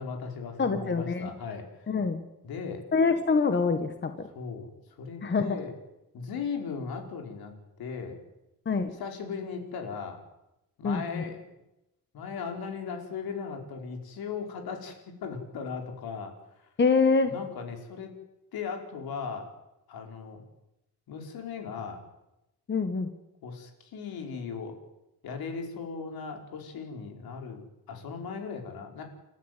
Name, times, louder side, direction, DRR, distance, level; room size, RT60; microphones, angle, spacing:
voice 1, 0.0-1.9 2.4-2.8 4.3-4.7 5.0-5.7 6.1-8.2 9.0-10.2 10.8-11.4 12.1-16.3 16.6-16.7 17.3-18.1 18.5-19.5 19.9-20.4 21.1-22.0 23.4-24.8 25.2-29.0, left 5 dB, 75° left, 4 dB, 5.1 m, -37 dB
voice 2, 0.6-1.3 1.9-2.2 2.9-4.3 5.2-5.6 8.7-8.9 10.8-11.2 16.8-17.3 22.7-23.1, left 4 dB, 30° left, 8 dB, 1.7 m, -25 dB
28.5 x 14.0 x 9.4 m, 0.91 s
cardioid pair, 135°, 37 cm